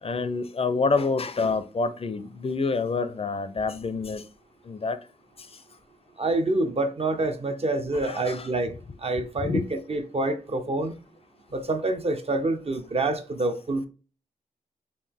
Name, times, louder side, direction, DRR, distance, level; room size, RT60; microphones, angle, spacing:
voice 1, 0.0-4.2 4.7-5.0 7.9-8.5 9.2-9.7, left 4 dB, 40° left, 0.4 m, -27 dB
voice 2, 6.2-10.9 11.5-13.9, right 2 dB, 45° right, 0.5 m, -27 dB
3.8 x 2.2 x 3.4 m
cardioid pair, 70°, 15 cm